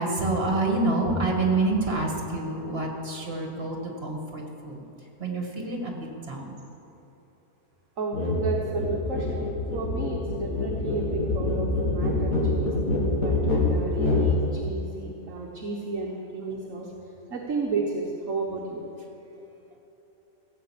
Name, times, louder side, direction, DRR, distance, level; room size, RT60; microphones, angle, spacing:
voice 1, 0.0-4.8 5.2-6.6 19.3-19.4, right 2 dB, 40° right, 1 dB, 2.3 m, -27 dB
voice 2, 8.0-12.7 13.2-16.9 17.3-18.8, right 3 dB, 55° right, -1 dB, 1.5 m, -33 dB
sound 1, 8.1-8.4 8.7-14.3, left 2 dB, 65° left, 2.8 m, -25 dB
15.5 x 8.5 x 7.5 m, 2.9 s
omnidirectional pair, 1.6 m